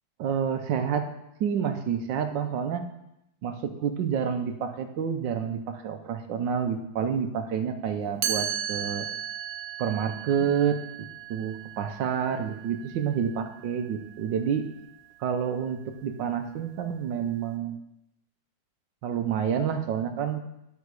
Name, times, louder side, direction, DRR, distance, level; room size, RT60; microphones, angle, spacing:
voice 1, 0.2-1.1 1.4-2.8 3.4-9.1 9.8-10.8 11.3-14.7 15.2-17.8 19.0-20.4, right 7 dB, 75° right, 7 dB, 1.5 m, -28 dB
Chime, 8.2-14.1, right 10 dB, 90° right, 1.4 m, -35 dB
10.5 x 5.7 x 4.8 m, 0.86 s
omnidirectional pair, 2.1 m